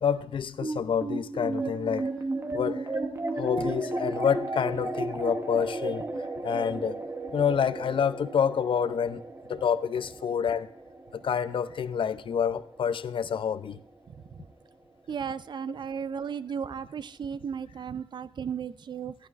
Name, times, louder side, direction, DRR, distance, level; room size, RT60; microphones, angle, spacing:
voice 1, 0.0-2.1 2.5-2.9 3.3-6.1 6.4-7.0 7.3-9.2 9.5-10.7 11.1-13.8 15.7-15.8, left 7 dB, 65° left, 0.4 m, -28 dB
sound 1, 0.6-13.2, right 2 dB, 30° right, 0.9 m, -34 dB
voice 2, 15.1-19.1, right 7 dB, 55° right, 0.4 m, -35 dB
14.0 x 11.0 x 2.4 m
wide cardioid pair, 170°, 9 cm